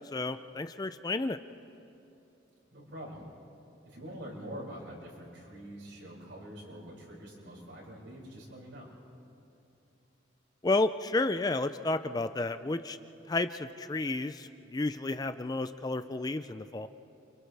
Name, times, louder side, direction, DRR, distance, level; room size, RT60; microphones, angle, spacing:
voice 1, 0.1-1.4 10.6-13.0 13.3-16.9, left 2 dB, 20° left, 11 dB, 0.4 m, -31 dB
voice 2, 2.7-3.2 3.8-8.9, equal, 75° right, -4 dB, 6.9 m, -45 dB
30.0 x 27.0 x 3.4 m, 2.8 s
head